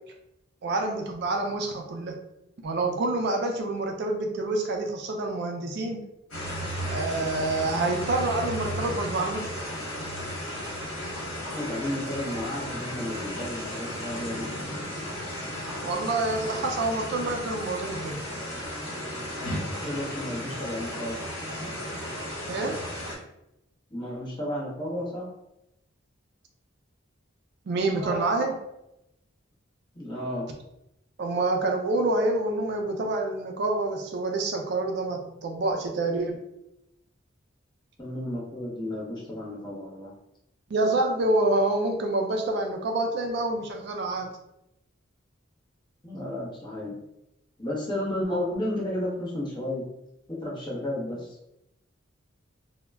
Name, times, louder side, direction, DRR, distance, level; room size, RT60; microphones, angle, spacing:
voice 1, 0.6-2.2 2.6-6.1 6.9-9.5 15.8-18.2 22.5-22.8 27.7-28.5 31.2-36.4 40.7-44.3, right 2 dB, 60° right, 3 dB, 0.4 m, -27 dB
sound 1, 6.3-23.2, equal, 70° left, 1.1 m, -34 dB
voice 2, 11.5-14.5 19.6-21.2 23.9-25.3 27.9-28.5 29.9-30.5 38.0-40.1 46.0-47.0 47.6-49.8 50.3-51.4, left 1 dB, 25° left, -5 dB, 0.8 m, -33 dB
2.2 x 2.0 x 3.4 m, 0.86 s
head